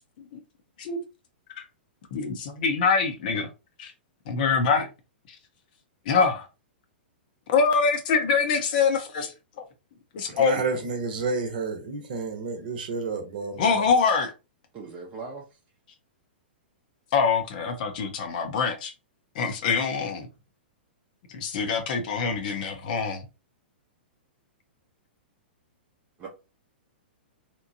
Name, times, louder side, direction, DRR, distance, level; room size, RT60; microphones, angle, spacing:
voice 1, 2.1-3.5 3.8-3.9 4.3-4.9 6.1-6.5 7.5-9.6 10.1-10.6 13.6-14.3 17.1-18.9 19.3-20.3 21.3-23.2, left 5 dB, 50° left, 0.7 m, -24 dB
voice 2, 10.3-13.9, right 4 dB, 55° right, 0.8 m, -30 dB
voice 3, 14.7-15.5 26.2-26.3, right 4 dB, 25° right, 0.6 m, -39 dB
2.9 x 2.1 x 2.6 m
figure-of-eight pair, 110°, 6 cm